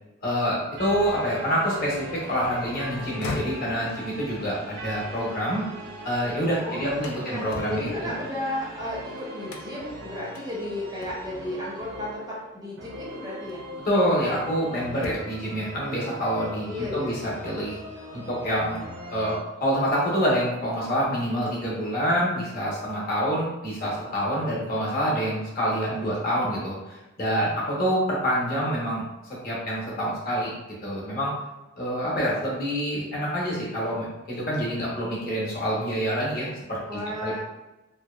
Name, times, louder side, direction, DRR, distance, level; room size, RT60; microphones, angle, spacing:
voice 1, 0.2-5.6 6.0-8.1 13.8-17.8 18.1-18.8 19.1-29.0 29.4-30.5 30.8-31.3 31.8-37.4, equal, 45° left, -6 dB, 0.8 m, -27 dB
sound 1, 0.8-19.4, right 1 dB, 85° right, 0.6 m, -40 dB
sound 2, 3.1-6.1 6.5-8.9 9.5-9.9 10.3-10.5 11.0-11.5 12.7-12.9 13.5-14.6 14.9-15.5, left 3 dB, 80° left, 0.4 m, -40 dB
voice 2, 6.6-13.7 16.6-17.2 36.9-37.4, left 1 dB, 20° right, -5 dB, 0.4 m, -34 dB
2.7 x 2.1 x 2.2 m, 1.0 s
head